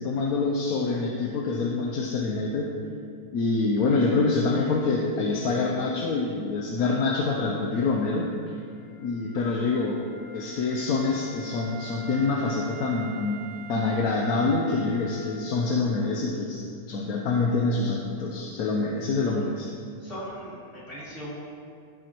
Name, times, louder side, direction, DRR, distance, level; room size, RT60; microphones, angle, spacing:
voice 1, 0.0-2.7 3.3-8.6 9.0-10.0 10.3-13.4 13.7-16.6 16.9-19.7, left 3 dB, 65° left, -1 dB, 1.2 m, -26 dB
Wind instrument woodwind instrument, 8.5-16.2, right 4 dB, 30° right, 1.6 m, -45 dB
voice 2, 20.0-21.3, equal, 45° left, -9 dB, 3.2 m, -39 dB
14.5 x 7.7 x 3.0 m, 2.3 s
omnidirectional pair, 1.8 m